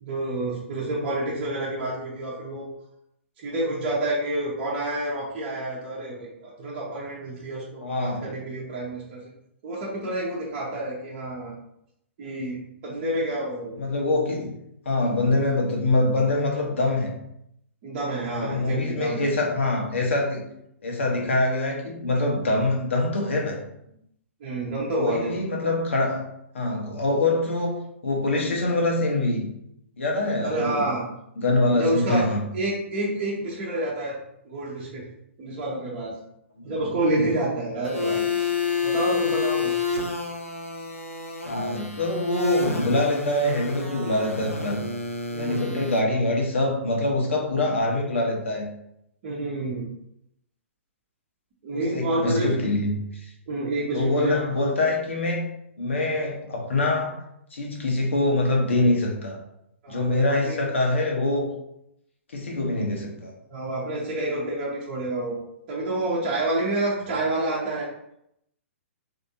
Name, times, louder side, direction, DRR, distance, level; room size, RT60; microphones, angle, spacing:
voice 1, 0.0-2.7 3.4-9.2 9.6-11.5 12.2-12.6 12.8-13.9 17.8-19.3 24.4-25.4 30.4-31.0 31.8-32.3 32.5-34.2 34.4-35.0 35.4-36.2 36.6-38.3 38.8-39.7 45.3-45.9 49.2-49.9 51.6-52.5 53.5-54.4 59.8-60.6 63.5-67.9, right 1 dB, 35° right, -6 dB, 0.8 m, -28 dB
voice 2, 7.8-8.2 13.8-14.5 14.8-17.1 18.3-20.4 20.8-23.6 25.0-26.2 26.5-29.5 30.0-30.9 31.4-32.4 36.6-36.7 41.4-44.8 45.4-48.7 51.7-53.3 53.9-55.5 55.8-57.1 57.5-59.4 59.9-61.5 62.3-63.3, left 2 dB, 65° left, -1 dB, 1.0 m, -24 dB
sound 1, 37.8-46.0, left 4 dB, 85° left, 0.7 m, -29 dB
3.4 x 2.8 x 2.7 m, 0.77 s
figure-of-eight pair, 115°, 7 cm